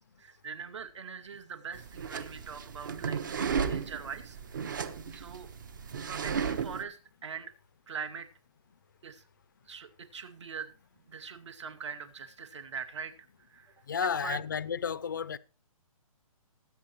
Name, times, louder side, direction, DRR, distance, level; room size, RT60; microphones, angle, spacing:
voice 1, 0.2-3.2 3.6-4.8 5.1-5.5 6.1-7.5 7.9-8.3 9.0-9.2 9.7-10.7 11.1-13.1 13.5-13.7 14.0-14.4, right 6 dB, 55° right, 2.2 m, -42 dB
sound 1, 1.7-6.8, right 6 dB, 35° right, 1.1 m, -34 dB
voice 2, 13.9-15.4, left 7 dB, 35° left, 0.5 m, -32 dB
19.5 x 8.3 x 3.0 m
hypercardioid pair, 180°, 18 cm